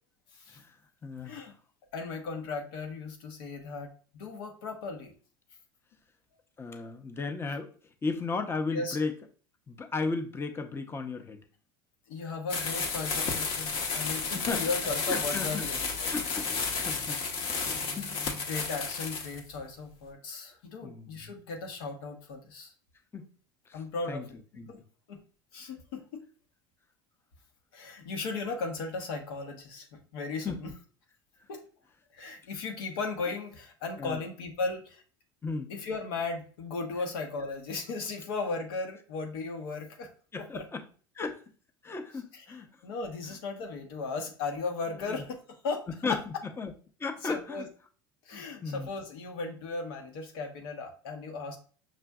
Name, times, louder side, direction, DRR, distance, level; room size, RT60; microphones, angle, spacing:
voice 1, 1.0-1.5 6.6-7.7 8.0-9.1 9.7-11.4 14.3-14.6 15.1-15.7 16.1-16.5 16.8-17.2 17.4-17.6 18.0-18.1 20.8-21.4 23.1-23.3 23.7-23.8 24.1-24.2 24.6-24.7 30.4-30.7 34.0-34.2 35.4-35.7 40.3-40.8 41.2-41.4 41.8-42.7 44.9-45.2 45.9-46.7 47.0-47.6 48.3-48.9, left 4 dB, 20° left, 6 dB, 0.6 m, -35 dB
voice 2, 1.9-5.1 8.7-9.0 12.1-16.1 17.7-18.2 18.5-22.7 23.7-24.2 24.7-24.8 25.1-25.2 25.5-26.3 27.7-30.7 31.5-31.6 32.1-35.0 35.7-40.1 40.5-40.6 42.3-46.2 47.2-47.7 48.3-51.6, left 4 dB, 80° left, 3 dB, 1.0 m, -36 dB
sound 1, 12.5-19.4, left 4 dB, 50° left, 0.8 m, -32 dB
5.9 x 2.5 x 2.3 m, 0.40 s
supercardioid pair, 100°, 12 cm